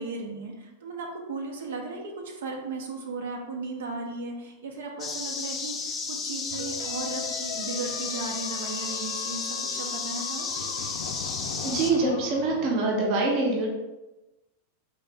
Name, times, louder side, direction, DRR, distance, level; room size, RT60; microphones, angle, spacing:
voice 1, 0.0-10.7, right 3 dB, 80° right, 1 dB, 0.9 m, -36 dB
sound 1, 5.0-11.9, left 4 dB, 15° left, 0.4 m, -33 dB
sound 2, 6.5-12.8, left 7 dB, 85° left, 0.4 m, -39 dB
voice 2, 11.6-13.7, right 3 dB, 35° right, -1 dB, 0.8 m, -25 dB
4.1 x 3.1 x 3.5 m, 1.0 s
supercardioid pair, 170°, 0 cm